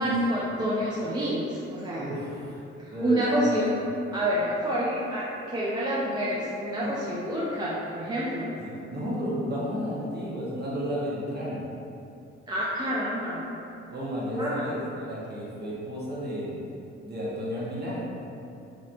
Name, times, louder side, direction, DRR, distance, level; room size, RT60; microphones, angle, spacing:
voice 1, 0.0-2.1 3.0-3.7 4.1-8.5 12.5-13.4 14.4-14.6, right 1 dB, 15° right, -7 dB, 0.4 m, -28 dB
voice 2, 2.0-2.6 2.9-3.5 6.8-6.9 8.6-11.6 13.9-16.6 17.0-18.1, equal, 30° right, -7 dB, 1.1 m, -32 dB
3.2 x 2.6 x 2.5 m, 2.8 s
figure-of-eight pair, 40°, 33 cm